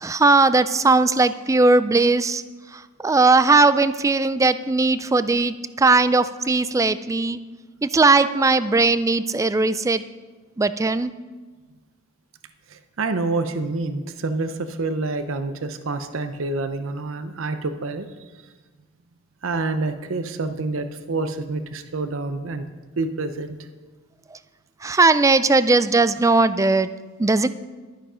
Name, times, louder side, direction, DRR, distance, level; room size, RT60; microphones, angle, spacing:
voice 1, 0.0-2.4 2.7-7.4 7.8-10.0 10.6-11.1 24.3-24.4 24.8-26.9 27.2-27.5, right 3 dB, 15° right, 13 dB, 0.3 m, -18 dB
voice 2, 12.7-18.1 19.4-22.7 23.0-23.6, right 3 dB, 65° right, 9 dB, 0.7 m, -27 dB
11.5 x 10.5 x 5.0 m, 1.3 s
head